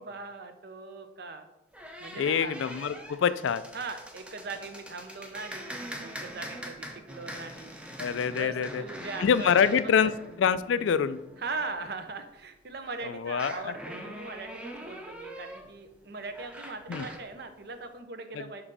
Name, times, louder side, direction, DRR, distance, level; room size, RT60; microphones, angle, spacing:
voice 1, 0.0-1.5 2.0-2.5 3.7-7.8 8.3-9.7 11.4-18.6, right 3 dB, 55° right, 8 dB, 0.7 m, -40 dB
sound 1, 1.7-12.2 13.3-17.3, equal, 5° right, 0.6 m, -43 dB
voice 2, 2.2-3.6 8.0-8.8 9.2-10.1 10.4-11.2 13.0-13.7 16.9-17.1 18.3-18.5, left 7 dB, 75° left, 15 dB, 0.3 m, -25 dB
5.8 x 5.4 x 4.0 m, 0.89 s
head